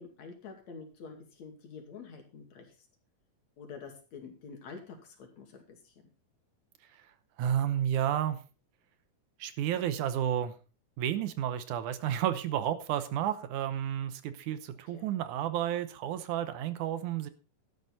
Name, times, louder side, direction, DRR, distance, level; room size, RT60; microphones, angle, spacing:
voice 1, 0.0-2.7 3.6-6.1 14.9-15.1, left 5 dB, 55° left, 3 dB, 3.6 m, -47 dB
voice 2, 7.4-8.4 9.4-10.5 11.0-17.3, right 10 dB, 70° right, 12 dB, 2.2 m, -31 dB
12.5 x 10.5 x 4.0 m, 0.33 s
omnidirectional pair, 3.9 m